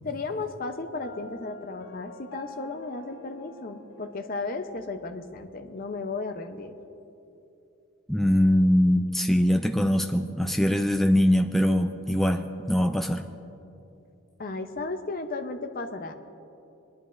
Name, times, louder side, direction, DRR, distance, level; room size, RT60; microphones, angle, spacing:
voice 1, 0.0-6.8 14.4-16.1, left 3 dB, 45° left, 6 dB, 0.7 m, -34 dB
Piano, 1.0-4.9, left 2 dB, 85° left, 1.1 m, -47 dB
voice 2, 8.1-13.2, equal, ahead, 5 dB, 0.3 m, -22 dB
22.0 x 11.0 x 2.6 m, 2.8 s
head